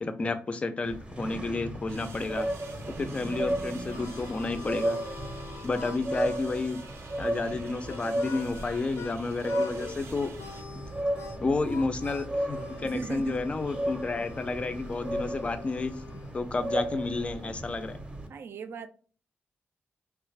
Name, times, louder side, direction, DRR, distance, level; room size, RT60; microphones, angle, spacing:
voice 1, 0.0-2.5 3.0-5.0 5.6-6.8 7.2-10.3 11.4-16.0 16.3-18.0, left 3 dB, 25° left, 0.4 m, -31 dB
sound 1, 0.8-18.3, right 1 dB, 20° right, 0.6 m, -35 dB
sound 2, 1.9-10.6, right 4 dB, 85° right, 0.7 m, -50 dB
Harmonica, 3.8-9.2 9.4-10.0 10.3-16.4, left 7 dB, 80° left, 0.5 m, -46 dB
voice 2, 12.8-13.5 18.3-18.9, right 5 dB, 60° right, 0.3 m, -37 dB
3.2 x 2.3 x 3.2 m
wide cardioid pair, 155°, 4 cm